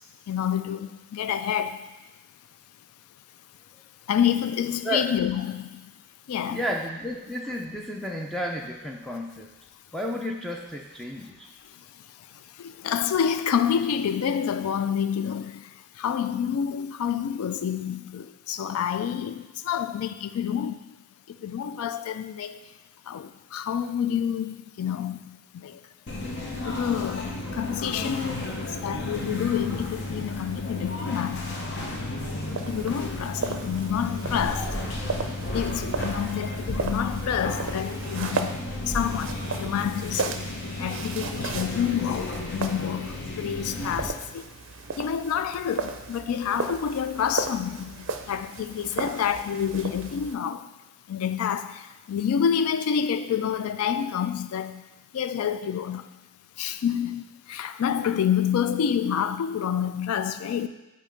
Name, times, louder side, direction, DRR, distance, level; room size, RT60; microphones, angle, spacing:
voice 1, 0.3-1.9 4.1-5.9 6.3-6.6 12.3-20.9 21.3-22.7 23.1-25.8 26.6-31.6 32.7-34.8 35.5-38.6 38.8-40.4 40.8-44.5 45.0-50.7 51.1-54.8 55.1-56.2 56.6-60.7, left 8 dB, 85° left, 0.3 m, -28 dB
voice 2, 6.5-9.5 9.9-11.5, equal, ahead, 0.4 m, -32 dB
sound 1, 26.1-44.1, left 1 dB, 55° left, 0.9 m, -33 dB
sound 2, 32.4-50.4, right 4 dB, 60° right, 0.4 m, -36 dB
8.4 x 2.8 x 5.1 m
head